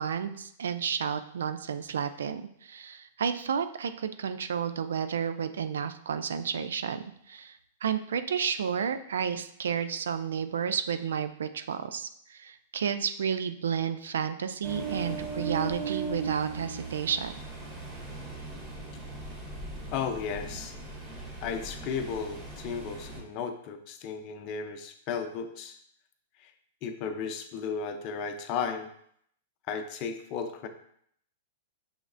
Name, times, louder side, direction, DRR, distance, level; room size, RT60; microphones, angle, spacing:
voice 1, 0.0-17.3, right 7 dB, 85° right, 10 dB, 0.3 m, -31 dB
Ocean, 14.6-23.2, right 3 dB, 15° right, 1.6 m, -38 dB
voice 2, 19.9-20.8 21.4-25.8 26.4-26.5 26.8-28.9 29.7-30.7, left 6 dB, 45° left, 6 dB, 0.6 m, -34 dB
6.3 x 3.1 x 2.5 m, 0.68 s
hypercardioid pair, 125°, 0 cm